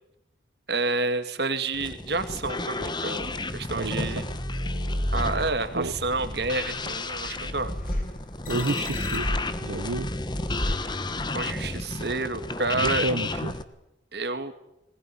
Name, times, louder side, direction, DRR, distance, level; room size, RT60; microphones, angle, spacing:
voice 1, 0.7-4.2 5.1-7.8 11.3-13.1 14.1-14.5, right 3 dB, 60° right, 9 dB, 2.2 m, -29 dB
sound 1, 1.7-13.6, left 2 dB, 25° left, 1.2 m, -33 dB
sound 2, 3.2-11.5, equal, 50° left, 5.2 m, -33 dB
voice 2, 3.7-4.2 5.7-5.9 8.5-10.1 12.7-13.6, right 2 dB, 85° right, 8 dB, 1.0 m, -30 dB
21.0 x 20.0 x 10.0 m, 0.85 s
head